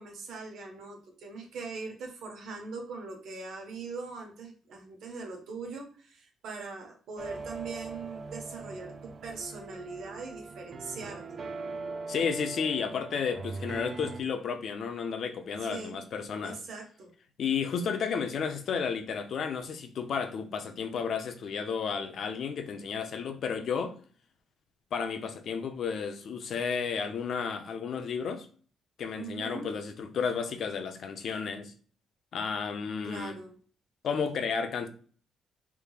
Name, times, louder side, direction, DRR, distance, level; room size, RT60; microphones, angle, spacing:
voice 1, 0.0-11.2 15.6-16.0 16.4-17.1 29.1-29.7 33.0-33.6, right 4 dB, 75° right, 1.1 m, -41 dB
sound 1, 7.2-14.2, right 3 dB, 45° right, 0.4 m, -41 dB
voice 2, 12.1-16.6 17.4-24.0 24.9-28.5 29.0-31.7 32.3-33.4 34.0-34.9, left 6 dB, 60° left, 0.5 m, -32 dB
3.5 x 3.1 x 2.3 m
cardioid pair, 90°, 0 cm